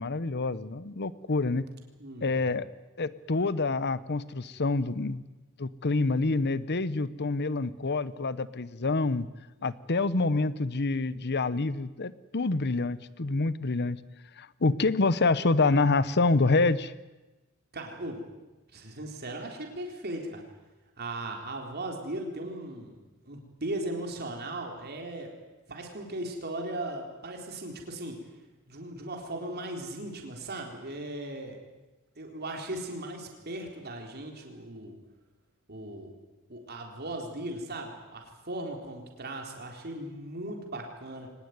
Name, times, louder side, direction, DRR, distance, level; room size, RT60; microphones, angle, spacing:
voice 1, 0.0-1.7 2.2-2.7 3.0-5.2 5.6-9.3 9.6-14.0 14.4-16.9, left 3 dB, 50° left, 17 dB, 0.9 m, -27 dB
voice 2, 2.0-2.6 17.7-18.2 18.7-20.4 21.0-25.4 25.7-28.3 28.7-31.6 32.2-35.0 35.7-36.1 36.5-41.3, right 1 dB, 50° right, 2 dB, 4.0 m, -38 dB
23.5 x 19.5 x 9.5 m, 1.1 s
head